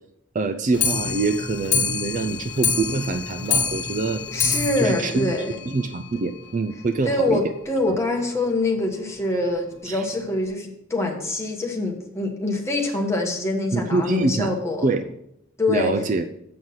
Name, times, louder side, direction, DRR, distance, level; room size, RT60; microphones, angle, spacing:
voice 1, 0.3-4.2 4.8-5.3 5.7-7.4 9.9-10.0 13.7-14.5 14.8-15.0 15.7-16.2, right 3 dB, 40° right, 9 dB, 0.4 m, -25 dB
Clock, 0.7-6.2 6.6-6.7 6.9-7.0 7.3-7.4 7.7-7.8 8.5-8.6 9.3-9.4 10.1-10.2, left 5 dB, 60° left, 1.2 m, -26 dB
voice 2, 4.3-5.6 7.0-14.9 15.6-15.9, left 2 dB, 15° left, 1 dB, 1.3 m, -24 dB
7.7 x 6.3 x 5.5 m, 0.78 s
head